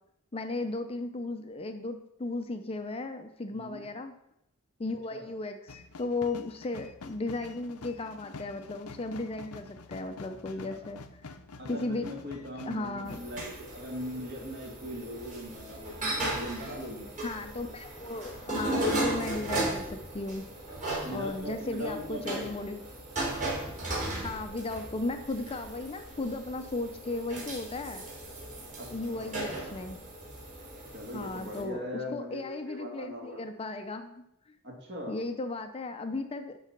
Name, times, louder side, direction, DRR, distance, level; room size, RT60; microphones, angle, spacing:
voice 1, 0.3-4.1 4.8-11.0 11.7-12.1 12.7-13.2 17.2-20.5 21.1-22.8 24.2-28.0 28.9-30.0 31.1-31.8 32.1-34.1 35.1-36.7, left 2 dB, 25° left, 8 dB, 0.5 m, -35 dB
voice 2, 3.5-3.8 5.1-5.3 10.6-10.9 11.6-17.1 21.0-22.5 28.8-28.9 29.1-29.4 30.9-33.4 34.6-35.2, equal, 50° right, -1 dB, 2.4 m, -40 dB
sound 1, 5.7-13.5, left 3 dB, 80° left, 0.7 m, -47 dB
sound 2, 13.0-31.6, right 1 dB, 35° right, 4.0 m, -36 dB
11.5 x 4.0 x 6.0 m, 0.82 s
head